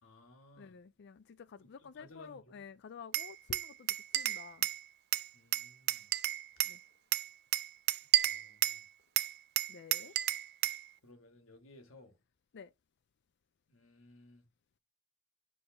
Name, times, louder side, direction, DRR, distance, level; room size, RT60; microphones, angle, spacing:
voice 1, 0.0-0.8 1.8-2.7 5.3-6.1 8.2-8.8 10.0-10.3 11.0-12.2 13.7-14.4, left 2 dB, 70° left, 1.6 m, -58 dB
voice 2, 0.6-4.7 6.6-6.8 9.7-10.1 12.5-12.7, left 6 dB, 55° left, 0.4 m, -51 dB
Glass, 3.1-4.8 5.1-6.8 7.1-8.8 9.2-10.8, right 14 dB, 50° right, 0.4 m, -31 dB
6.3 x 5.4 x 5.5 m
head